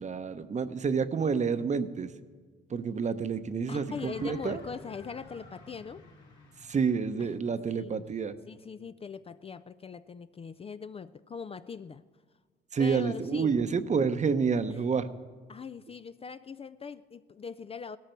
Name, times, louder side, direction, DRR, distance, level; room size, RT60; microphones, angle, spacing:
voice 1, 0.0-2.1 2.7-4.6 6.6-8.3 12.7-15.1, right 5 dB, 35° right, 11 dB, 0.8 m, -29 dB
voice 2, 3.7-6.0 7.2-7.4 7.7-8.0 8.5-12.0 12.8-13.6 15.5-18.0, left 5 dB, 30° left, 13 dB, 0.4 m, -41 dB
sound 1, 3.8-8.7, left 2 dB, 70° left, 3.6 m, -52 dB
17.0 x 13.0 x 4.5 m, 1.5 s
cardioid pair, 90°, 20 cm